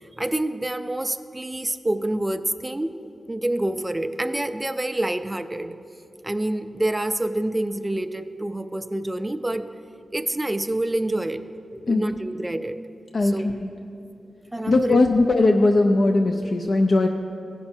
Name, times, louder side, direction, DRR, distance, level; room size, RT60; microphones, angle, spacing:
voice 1, 0.0-2.9 3.3-5.8 6.2-9.7 10.1-11.4 11.9-12.8 13.2-13.5 14.5-15.0, right 1 dB, 15° right, 10 dB, 0.4 m, -27 dB
voice 2, 13.1-13.7 14.7-17.1, left 2 dB, 55° left, 4 dB, 0.4 m, -19 dB
15.5 x 5.8 x 4.4 m, 2.7 s
wide cardioid pair, 130°, 0 cm